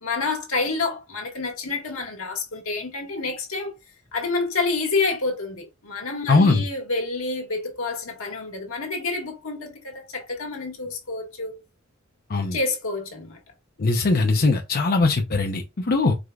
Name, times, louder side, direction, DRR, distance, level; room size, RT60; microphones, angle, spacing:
voice 1, 0.0-3.7 4.1-11.6 12.5-13.4, left 3 dB, 80° left, 1.5 m, -28 dB
voice 2, 6.3-6.6 12.3-12.6 13.8-16.1, left 3 dB, 45° left, 0.6 m, -20 dB
4.8 x 3.7 x 2.3 m
head